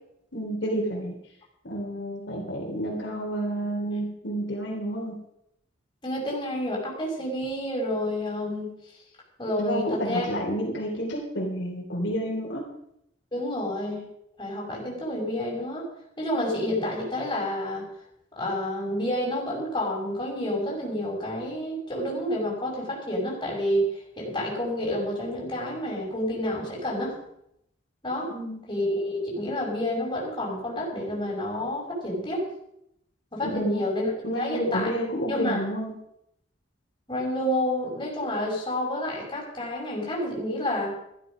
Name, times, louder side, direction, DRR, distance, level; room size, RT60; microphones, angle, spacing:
voice 1, 0.3-1.2 1.6-5.2 9.6-12.6 28.3-28.6 33.4-33.8 34.2-35.9, right 1 dB, 65° left, -2 dB, 3.7 m, -30 dB
voice 2, 6.0-8.7 9.4-10.3 13.3-14.1 14.4-15.9 16.2-17.9 18.3-27.2 28.0-28.3 28.7-32.5 33.3-34.9 35.3-35.6 37.1-41.0, left 1 dB, 25° left, -3 dB, 5.6 m, -29 dB
14.0 x 12.5 x 5.3 m, 0.76 s
head